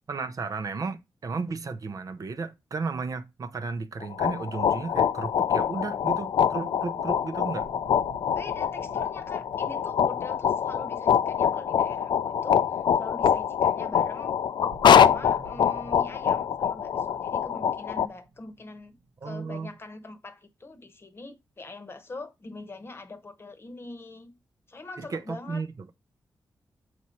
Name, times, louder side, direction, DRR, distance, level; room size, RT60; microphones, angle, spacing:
voice 1, 0.1-7.7 19.2-19.7 25.0-25.7, right 4 dB, 50° right, 0.7 m, -34 dB
sound 1, 4.0-18.1, left 8 dB, 75° left, 0.4 m, -24 dB
sound 2, 5.3-5.6 5.9-6.0 7.0-7.1 7.6-12.9 13.2-13.3 13.9-14.0 14.7-19.9, right 3 dB, 80° right, 1.1 m, -51 dB
voice 2, 8.3-14.4 15.0-19.0 19.2-24.4 24.7-25.6, left 2 dB, 30° left, 1.0 m, -43 dB
7.2 x 4.9 x 4.3 m
wide cardioid pair, 125°, 8 cm